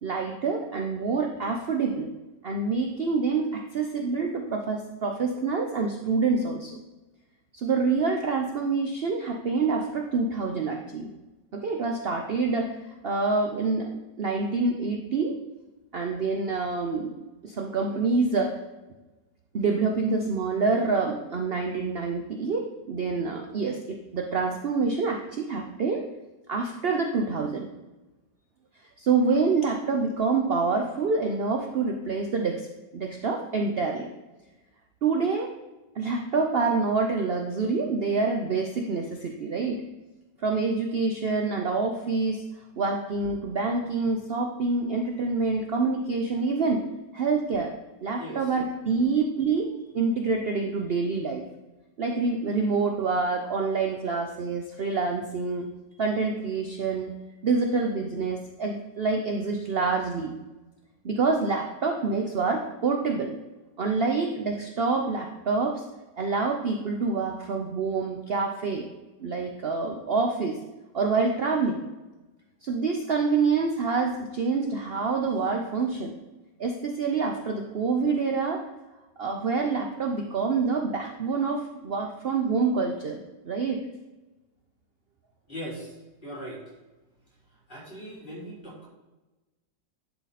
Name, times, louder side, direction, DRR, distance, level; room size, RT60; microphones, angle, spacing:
voice 1, 0.0-2.1 2.4-6.7 7.5-11.1 11.5-13.9 14.2-15.4 15.9-17.1 17.4-18.6 19.5-26.0 26.5-27.7 29.0-32.7 32.9-34.1 35.0-35.6 36.0-39.8 40.4-42.4 42.8-46.8 47.1-47.7 48.0-51.5 52.0-55.7 56.0-57.1 57.4-60.3 61.0-63.3 63.8-65.8 66.2-68.9 69.2-70.6 70.9-71.8 72.6-76.1 76.6-78.6 79.2-83.2 83.4-83.8, right 4 dB, 65° right, 2 dB, 0.6 m, -27 dB
voice 2, 85.5-85.9 86.2-86.6 87.7-88.9, equal, 25° left, -5 dB, 3.3 m, -39 dB
11.0 x 4.9 x 4.2 m, 1.1 s
omnidirectional pair, 1.9 m